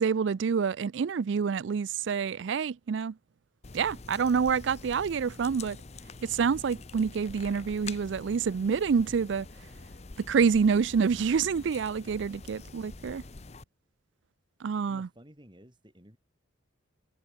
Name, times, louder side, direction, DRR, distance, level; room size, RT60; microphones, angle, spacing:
voice 1, 0.0-3.1 3.7-5.8 6.2-9.5 10.3-13.2 14.6-15.1, right 6 dB, 65° right, 0.4 m, -27 dB
sound 1, 3.6-13.6, left 3 dB, 30° left, 0.7 m, -46 dB
voice 2, 14.9-16.2, equal, 25° right, 4.9 m, -54 dB
head